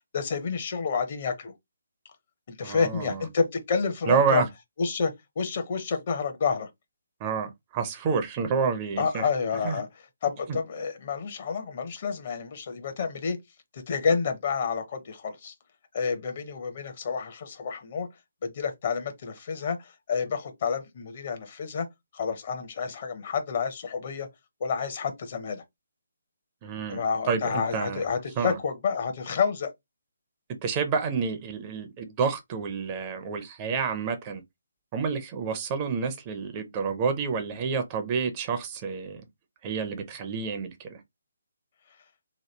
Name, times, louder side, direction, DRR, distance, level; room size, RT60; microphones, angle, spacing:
voice 1, 0.1-1.5 2.5-4.4 4.8-6.7 9.0-13.4 13.7-15.5 15.9-18.1 18.4-21.9 22.1-24.3 24.6-25.6 26.9-29.7, left 5 dB, 40° left, 0.8 m, -29 dB
voice 2, 2.6-3.2 4.1-4.5 7.2-9.2 9.6-9.8 26.6-28.0 28.4-28.6 30.6-34.4 34.9-39.2 39.6-41.0, right 5 dB, 25° right, 0.5 m, -29 dB
3.0 x 2.2 x 3.2 m
figure-of-eight pair, 140°, 0 cm